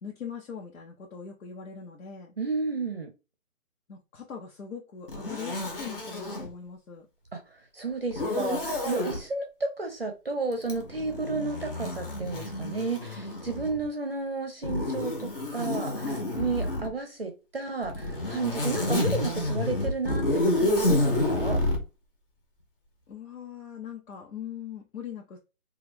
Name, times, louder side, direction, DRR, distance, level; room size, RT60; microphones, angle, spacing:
voice 1, 0.0-2.3 3.9-7.1 15.7-16.2 23.1-25.4, left 7 dB, 65° left, 0.9 m, -41 dB
voice 2, 2.4-3.1 7.3-7.4 7.7-15.9 16.4-21.6, right 3 dB, 40° right, 0.6 m, -32 dB
Zipper (clothing), 5.1-6.5 8.1-9.2 10.6-13.8 14.6-16.9 17.8-21.8, left 1 dB, 40° left, 1.0 m, -29 dB
3.2 x 2.4 x 3.2 m
hypercardioid pair, 170°, 44 cm